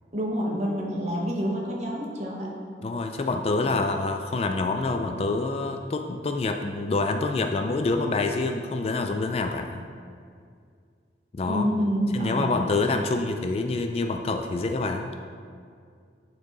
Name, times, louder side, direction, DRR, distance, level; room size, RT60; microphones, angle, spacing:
voice 1, 0.1-2.5 3.6-3.8 11.5-12.5, equal, 40° right, -2 dB, 1.1 m, -28 dB
voice 2, 2.8-9.8 11.3-11.7 12.1-15.1, left 3 dB, 35° left, 5 dB, 0.3 m, -26 dB
8.8 x 4.5 x 4.0 m, 2.2 s
head